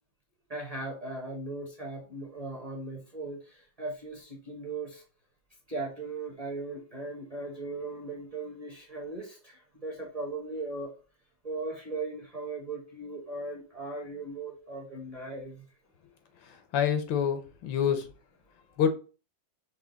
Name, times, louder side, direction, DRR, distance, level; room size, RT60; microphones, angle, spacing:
voice 1, 0.5-5.0 5.7-10.9 11.4-15.7 16.5-16.6, right 2 dB, 30° right, 0 dB, 0.8 m, -38 dB
voice 2, 16.4-18.1 18.8-18.9, left 8 dB, 90° left, 7 dB, 1.6 m, -27 dB
6.0 x 2.3 x 3.8 m, 0.33 s
omnidirectional pair, 2.0 m